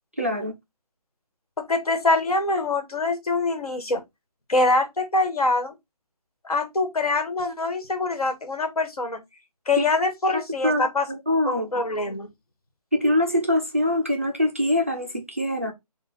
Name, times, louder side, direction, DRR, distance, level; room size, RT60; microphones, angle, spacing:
voice 1, 0.2-0.5 9.8-9.9 10.6-11.8 12.9-15.7, left 1 dB, 20° right, 0.4 m, -24 dB
voice 2, 1.6-4.0 4.5-5.7 6.4-9.2 9.7-11.1 11.5-12.3, left 2 dB, 70° left, 1.5 m, -24 dB
5.4 x 2.3 x 3.7 m
figure-of-eight pair, 165°, 20 cm